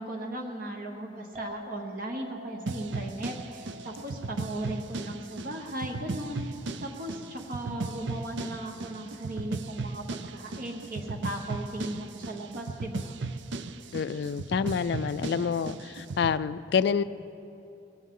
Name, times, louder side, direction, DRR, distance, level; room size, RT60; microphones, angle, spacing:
voice 1, 0.0-6.4 6.8-13.2, right 1 dB, 50° right, 3 dB, 1.1 m, -37 dB
Chink clink, 1.4-7.6, left 2 dB, 30° right, 1.6 m, -49 dB
sound 1, 2.7-16.4, right 3 dB, 75° right, 0.6 m, -36 dB
voice 2, 13.9-17.0, left 6 dB, 65° left, 14 dB, 0.3 m, -28 dB
20.5 x 16.5 x 3.8 m, 2.8 s
head